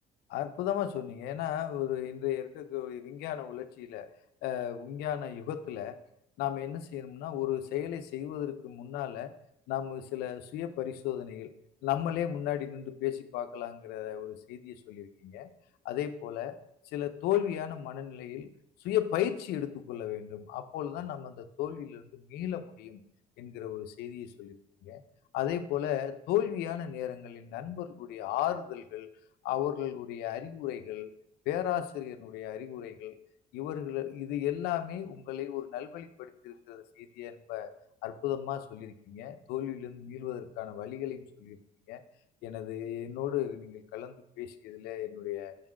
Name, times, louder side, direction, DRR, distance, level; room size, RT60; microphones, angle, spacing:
voice 1, 0.3-4.1 4.4-6.0 6.4-9.3 9.7-11.5 11.8-15.5 15.8-16.5 16.9-18.5 18.8-23.0 23.4-24.6 24.8-25.0 25.3-29.1 29.4-31.1 31.5-33.2 33.5-37.7 38.0-41.6 41.9-42.0 42.4-45.6, left 11 dB, 85° left, 10 dB, 0.6 m, -35 dB
6.6 x 3.7 x 6.3 m, 0.75 s
cardioid pair, 95°, 16 cm